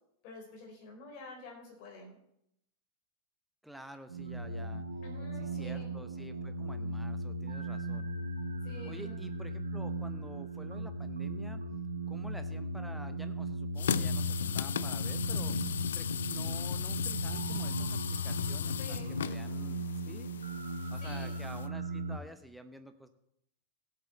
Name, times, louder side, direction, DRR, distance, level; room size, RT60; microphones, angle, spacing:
voice 1, 0.2-2.2 5.0-5.9 8.6-9.2 15.3-15.6 18.8-19.3 21.0-21.4, left 2 dB, 45° left, 0 dB, 4.1 m, -49 dB
voice 2, 3.6-4.8 5.4-8.1 8.9-11.6 12.1-15.6 15.9-20.3 20.9-23.1, right 1 dB, ahead, 8 dB, 1.0 m, -50 dB
sound 1, 4.1-22.2, right 1 dB, 75° right, 1.0 m, -37 dB
sound 2, 13.8-21.7, left 8 dB, 65° left, 0.3 m, -36 dB
17.0 x 7.9 x 4.2 m, 0.77 s
figure-of-eight pair, 90°, 0 cm